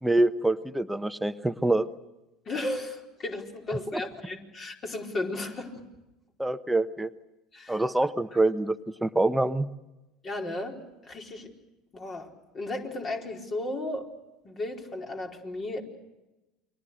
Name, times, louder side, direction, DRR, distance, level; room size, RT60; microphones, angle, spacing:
voice 1, 0.0-1.9 3.9-4.0 6.4-7.1 7.7-8.8 9.0-9.7, right 2 dB, 5° right, 10 dB, 1.0 m, -25 dB
voice 2, 2.5-5.8 7.5-7.8 8.3-8.4 10.2-11.5 11.9-14.1 14.4-15.8, left 2 dB, 35° left, 2 dB, 4.6 m, -35 dB
29.5 x 23.5 x 6.5 m, 1.0 s
hypercardioid pair, 75°, 0 cm